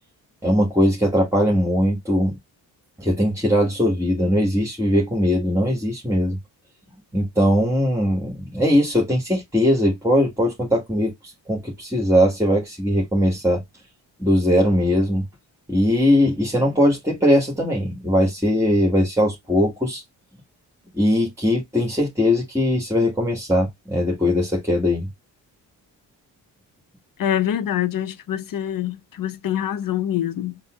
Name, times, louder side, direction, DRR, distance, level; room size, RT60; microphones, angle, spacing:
voice 1, 0.4-2.3 3.0-6.4 7.1-13.6 14.2-15.2 15.7-20.0 20.9-25.1, equal, 5° right, 1.5 m, -20 dB
voice 2, 27.2-30.6, left 10 dB, 50° left, 0.6 m, -25 dB
4.0 x 2.0 x 2.3 m
supercardioid pair, 40°, 46 cm